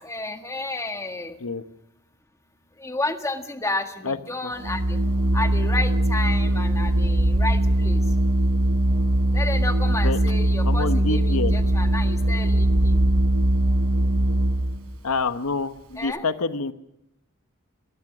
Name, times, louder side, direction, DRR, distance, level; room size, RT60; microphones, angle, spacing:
voice 1, 0.0-1.4 2.8-5.0 5.3-8.0 9.3-13.0 16.0-16.2, left 2 dB, 15° left, 6 dB, 1.6 m, -31 dB
Organ, 4.5-14.8, right 1 dB, 90° right, 4.3 m, -21 dB
voice 2, 10.6-11.5 15.0-16.7, left 3 dB, 90° left, 11 dB, 1.0 m, -27 dB
24.0 x 20.0 x 6.1 m, 0.78 s
head